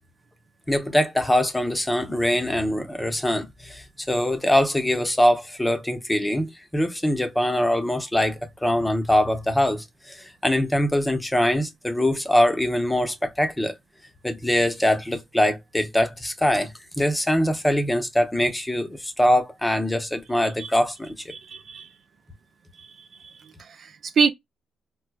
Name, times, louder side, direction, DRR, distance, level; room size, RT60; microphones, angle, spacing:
voice 1, 0.7-13.7 14.2-16.7 17.0-21.1, left 1 dB, 10° left, 0.8 m, -23 dB
voice 2, 21.3-21.9 22.8-22.9 23.2-23.3 23.6-24.3, right 6 dB, 55° right, 0.4 m, -25 dB
4.4 x 2.1 x 2.3 m
cardioid pair, 90°, 0 cm